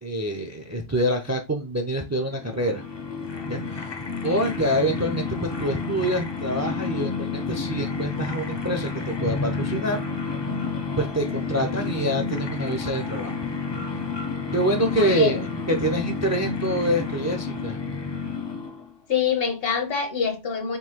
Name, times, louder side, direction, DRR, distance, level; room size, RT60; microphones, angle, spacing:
voice 1, 0.0-2.8 3.5-4.0 4.2-5.3 5.6-10.0 11.0-13.3 14.5-17.8, right 1 dB, 25° right, 0.4 m, -26 dB
sound 1, 2.3-19.0, left 5 dB, 30° left, 0.5 m, -30 dB
voice 2, 15.0-15.3 19.1-20.8, left 7 dB, 65° left, 1.1 m, -25 dB
3.8 x 2.7 x 4.4 m
omnidirectional pair, 1.1 m